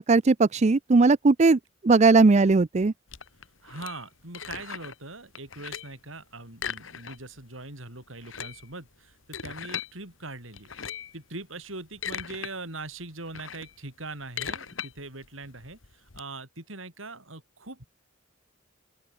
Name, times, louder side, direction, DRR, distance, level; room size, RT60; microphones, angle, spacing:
voice 1, 0.0-1.6 1.8-2.9, right 3 dB, 35° right, 0.5 m, -19 dB
sound 1, 3.1-5.0 5.3-6.0 6.5-7.4 7.7-7.8 8.1-9.9 10.5-11.2 11.7-12.5 12.9-16.2, left 7 dB, 80° left, 1.7 m, -38 dB
voice 2, 3.6-10.7 11.1-17.8, right 2 dB, 90° right, 7.2 m, -41 dB
open air
head